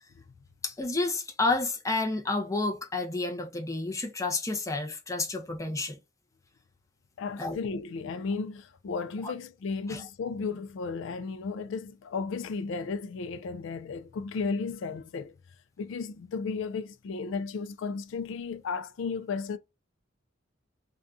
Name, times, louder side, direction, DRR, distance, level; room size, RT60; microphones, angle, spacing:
voice 1, 0.6-6.0 7.4-7.6 9.2-9.3 9.9-10.1, left 3 dB, 15° left, 0.6 m, -30 dB
voice 2, 7.2-15.4 15.8-19.6, left 4 dB, 75° left, 0.4 m, -34 dB
2.6 x 2.3 x 3.6 m
head